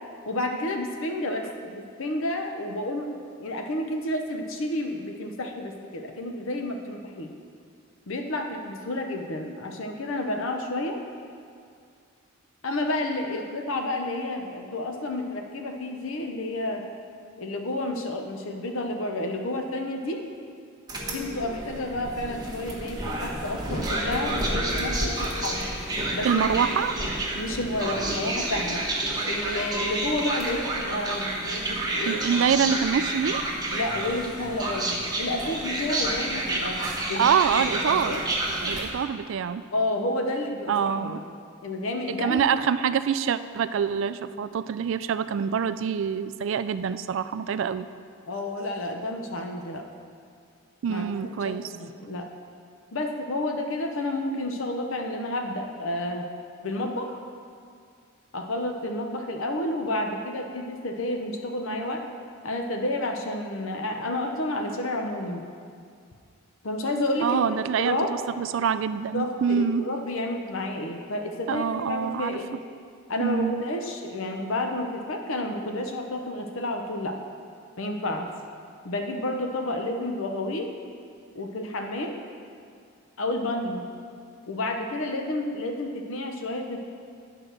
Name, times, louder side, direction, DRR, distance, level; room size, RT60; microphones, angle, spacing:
voice 1, 0.3-3.1 3.4-7.3 8.1-11.0 12.6-16.8 17.4-20.2 21.1-25.6 26.1-26.3 27.3-28.8 29.2-32.2 33.7-36.8 37.1-38.2 39.7-41.2 41.6-42.4 48.3-49.8 50.9-51.1 51.4-52.3 52.9-56.2 56.6-57.2 58.3-62.0 62.4-65.4 66.6-67.4 67.8-68.1 69.1-72.6 73.1-77.2 77.8-78.3 78.8-80.7 81.3-82.2 83.2-83.8 84.5-86.8, left 1 dB, 65° left, 3 dB, 0.8 m, -30 dB
sound 1, 20.9-38.9, right 1 dB, 20° right, 1.2 m, -29 dB
voice 2, 26.2-27.0 32.1-33.4 37.1-38.2 38.6-39.7 40.7-41.2 42.1-47.9 50.8-51.7 67.2-69.9 71.5-72.4 73.2-73.6, right 7 dB, 60° right, 13 dB, 0.3 m, -25 dB
9.9 x 4.7 x 6.5 m, 2.3 s
head